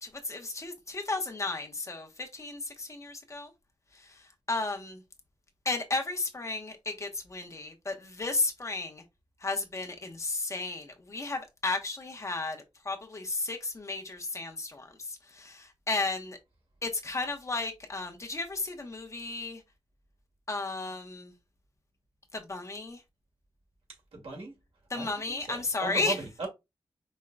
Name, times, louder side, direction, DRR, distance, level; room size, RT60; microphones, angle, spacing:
voice 1, 0.0-3.5 3.9-5.0 5.6-9.0 9.4-16.4 16.8-19.6 20.5-21.3 22.3-23.0 24.9-26.1, left 3 dB, 30° left, 0.9 m, -34 dB
voice 2, 24.1-24.6 24.9-26.5, right 3 dB, 85° right, 2.1 m, -37 dB
5.3 x 3.7 x 2.2 m
wide cardioid pair, 165°, 10 cm